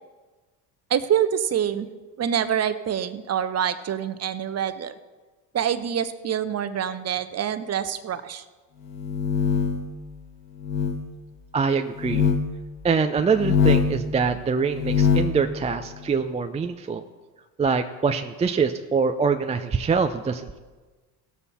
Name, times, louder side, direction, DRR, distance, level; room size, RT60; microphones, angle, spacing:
voice 1, 0.9-1.9 2.2-4.9 5.5-8.4, right 9 dB, 30° right, 11 dB, 0.9 m, -26 dB
sound 1, 8.9-9.9 10.6-11.0 12.0-12.4 13.3-14.0 14.7-15.4, left 7 dB, 85° left, 1.7 m, -22 dB
voice 2, 11.5-12.3 12.8-17.0 17.6-20.6, right 5 dB, 15° right, 6 dB, 0.5 m, -24 dB
18.0 x 7.0 x 4.2 m, 1.3 s
hypercardioid pair, 80°, 47 cm